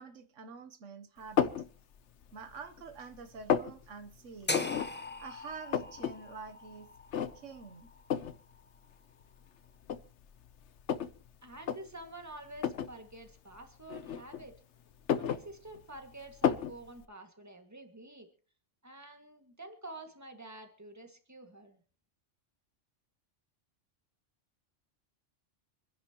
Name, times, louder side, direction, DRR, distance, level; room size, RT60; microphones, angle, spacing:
voice 1, 0.0-1.5 2.3-4.7 5.2-6.9 7.1-7.9, right 5 dB, 80° right, 1.3 m, -47 dB
sound 1, 1.4-1.7 2.2-2.9 3.2-3.7 4.5-4.9 5.2-5.3 5.5-6.1 6.5-6.6 7.1-7.6 8.1-8.4 9.2-9.3 9.8-11.2 11.6-11.8 12.6-12.9 13.9-14.6 14.9-16.0 16.4-16.8, left 8 dB, 70° left, 1.1 m, -31 dB
sound 2, 4.5-8.6, left 2 dB, 10° left, 0.7 m, -40 dB
voice 2, 11.4-14.6 15.2-18.3 18.8-21.8, right 2 dB, 15° right, 2.0 m, -48 dB
27.5 x 10.5 x 3.0 m
omnidirectional pair, 1.2 m